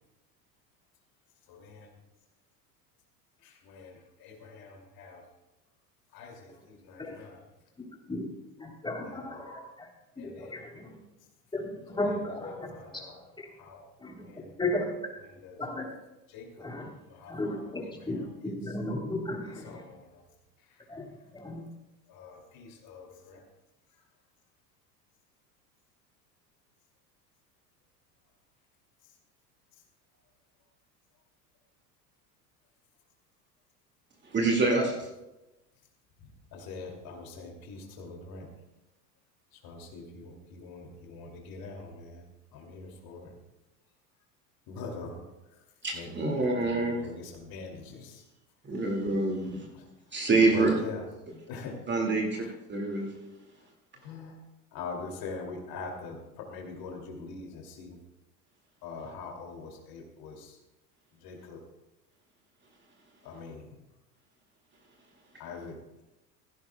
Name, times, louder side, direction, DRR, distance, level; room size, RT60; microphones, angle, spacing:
voice 1, 1.5-1.9 3.4-5.2 6.1-7.4 9.0-9.4 10.2-10.6 12.7-13.1 13.6-13.8 14.2-14.5 15.4-15.6 16.3-16.7 17.1-17.6 18.0-18.3 19.6-20.2 22.1-23.4 36.5-38.5 39.5-42.3 42.5-43.3 44.7-45.2 45.9-48.2 49.4-49.8 50.4-51.0 51.5-51.8 52.3-52.5 52.9-53.0 53.9-54.4 54.7-58.0 58.8-60.6 61.2-61.6 63.2-63.8 65.4-66.0, left 4 dB, 45° left, 1 dB, 2.8 m, -43 dB
voice 2, 8.6-9.9 10.2-11.0 11.5-13.5 14.0-14.3 14.6-14.9 15.6-15.9 16.6-16.9 17.3-19.9 20.9-21.6, left 1 dB, 10° left, 0 dB, 3.4 m, -35 dB
voice 3, 34.2-35.1 45.8-47.1 48.6-49.7 50.1-50.8 51.9-53.1, right 3 dB, 20° right, 0 dB, 2.3 m, -26 dB
16.0 x 16.0 x 2.3 m, 0.96 s
figure-of-eight pair, 75°, 50 cm